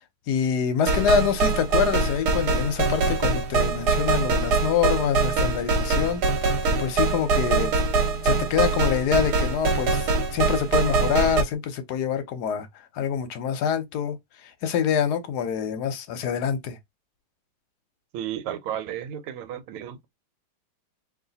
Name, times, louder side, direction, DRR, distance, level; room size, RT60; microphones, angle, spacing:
voice 1, 0.3-6.2 6.8-7.7 8.2-12.7 12.9-14.2 14.6-16.8, left 7 dB, 65° left, 1.0 m, -25 dB
sound 1, 0.9-11.4, right 3 dB, 55° right, 1.5 m, -23 dB
voice 2, 18.1-20.1, right 10 dB, 90° right, 1.6 m, -33 dB
3.2 x 2.6 x 3.9 m
omnidirectional pair, 2.3 m